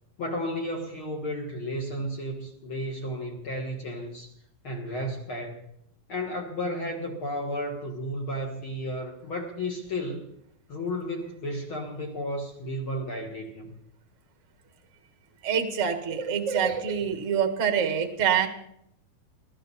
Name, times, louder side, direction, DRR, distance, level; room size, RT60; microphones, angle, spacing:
voice 1, 0.2-4.3 4.6-5.6 6.1-10.3 10.7-13.8, equal, 45° left, 1 dB, 1.9 m, -33 dB
voice 2, 15.4-18.5, right 7 dB, 50° right, 6 dB, 0.9 m, -25 dB
21.0 x 14.0 x 4.2 m, 0.74 s
omnidirectional pair, 4.1 m